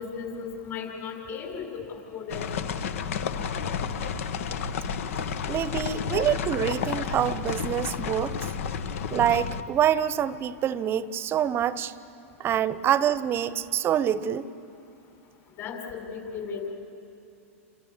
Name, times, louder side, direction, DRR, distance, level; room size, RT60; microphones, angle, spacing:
voice 1, 0.0-2.5 15.6-16.7, left 6 dB, 35° left, 2 dB, 6.0 m, -36 dB
sound 1, 2.3-9.6, left 6 dB, 70° left, 1.5 m, -31 dB
voice 2, 5.5-8.4 9.1-11.9 12.4-14.5, right 10 dB, 30° right, 17 dB, 0.9 m, -26 dB
28.5 x 27.5 x 7.4 m, 2.8 s
hypercardioid pair, 110°, 8 cm